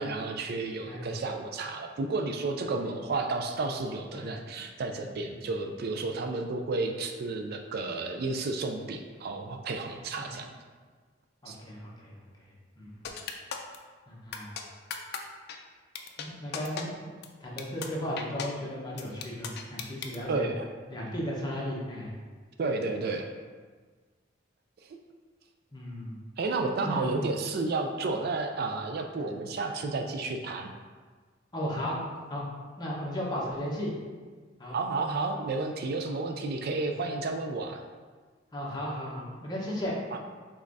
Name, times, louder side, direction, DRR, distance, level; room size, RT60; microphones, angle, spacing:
voice 1, 0.0-10.5 11.5-11.6 20.3-20.7 22.6-23.2 26.4-30.7 34.7-37.8 40.1-40.2, right 3 dB, 55° right, 4 dB, 0.4 m, -32 dB
voice 2, 0.8-1.2 4.1-4.3 5.3-5.4 10.2-10.3 11.4-12.3 12.8-13.1 14.1-14.5 16.2-17.1 17.4-20.5 20.9-22.1 25.7-26.1 26.8-27.1 31.5-32.0 32.3-32.4 32.8-33.9 34.6-34.8 36.0-36.1 38.5-39.9, equal, 25° left, -5 dB, 1.0 m, -35 dB
sound 1, 13.0-13.8 14.3-14.6 14.9-15.2 15.5-15.6 15.9-16.3 16.5-16.8 17.2-17.3 17.6-17.9 18.2-18.5 19.0-20.2, left 7 dB, 60° left, 0.4 m, -36 dB
5.1 x 3.6 x 2.6 m, 1.5 s
head